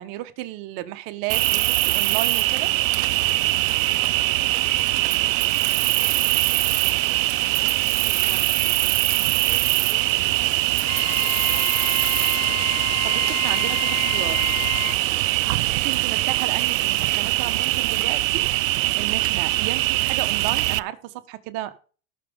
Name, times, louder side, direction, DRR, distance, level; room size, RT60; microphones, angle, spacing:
voice 1, 0.0-2.7 13.0-14.5 15.8-21.8, right 15 dB, 55° right, 1.5 m, -33 dB
Cricket, 1.3-20.8, right 18 dB, 85° right, 0.6 m, -22 dB
voice 2, 3.2-12.0 14.9-15.9, left 8 dB, 65° left, 3.8 m, -49 dB
Wind instrument woodwind instrument, 10.9-15.0, left 21 dB, 40° left, 0.4 m, -31 dB
18.0 x 6.4 x 3.7 m
supercardioid pair, 125°, 38 cm